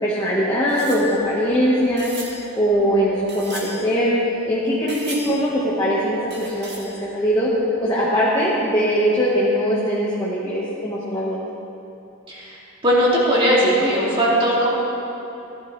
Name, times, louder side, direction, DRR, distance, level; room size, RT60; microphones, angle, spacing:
voice 1, 0.0-2.1 2.5-4.1 4.4-5.5 5.8-7.5 7.8-11.4, equal, 15° left, -8 dB, 1.5 m, -21 dB
sound 1, 0.7-4.5 4.9-5.8 6.3-7.5 7.8-7.9 8.1-8.2, right 2 dB, 50° right, 2.3 m, -39 dB
voice 2, 12.3-12.6 12.8-14.7, equal, 25° right, -6 dB, 2.6 m, -18 dB
16.5 x 12.0 x 3.4 m, 2.9 s
head